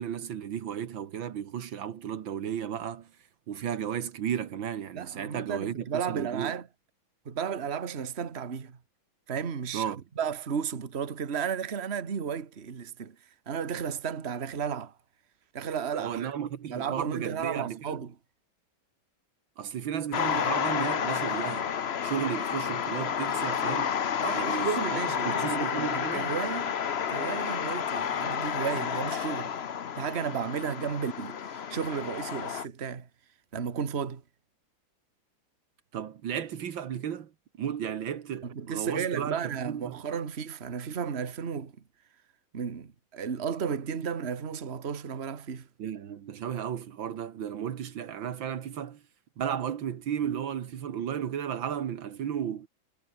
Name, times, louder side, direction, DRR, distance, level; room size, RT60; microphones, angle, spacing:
voice 1, 0.0-3.1 3.5-6.6 9.7-10.0 16.0-18.0 19.6-21.7 22.0-24.0 24.4-26.3 35.9-37.3 37.6-40.0 45.8-49.0 49.4-52.7, right 9 dB, 75° right, 2.1 m, -34 dB
voice 2, 4.9-6.6 7.2-8.8 9.3-13.1 13.5-14.9 15.5-16.3 16.7-18.1 24.2-26.7 27.1-29.5 30.0-33.1 33.5-34.2 38.4-41.7 42.5-45.7, right 7 dB, 35° right, 1.7 m, -33 dB
sound 1, 20.1-32.6, left 7 dB, 45° left, 0.8 m, -30 dB
omnidirectional pair, 2.2 m